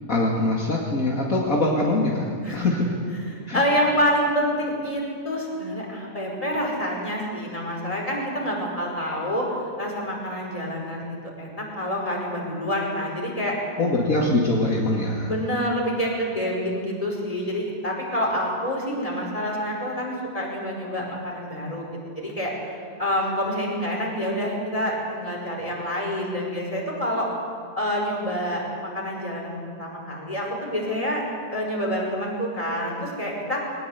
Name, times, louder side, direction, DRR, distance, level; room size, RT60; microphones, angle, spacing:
voice 1, 0.1-3.0 3.5-3.6 13.8-15.3, left 2 dB, 60° left, -3 dB, 2.7 m, -23 dB
voice 2, 3.5-9.5 9.8-13.6 15.3-21.9 22.1-27.3 27.8-31.2 31.5-33.7, equal, 20° left, -2 dB, 5.4 m, -27 dB
22.0 x 19.5 x 8.3 m, 2.2 s
omnidirectional pair, 1.7 m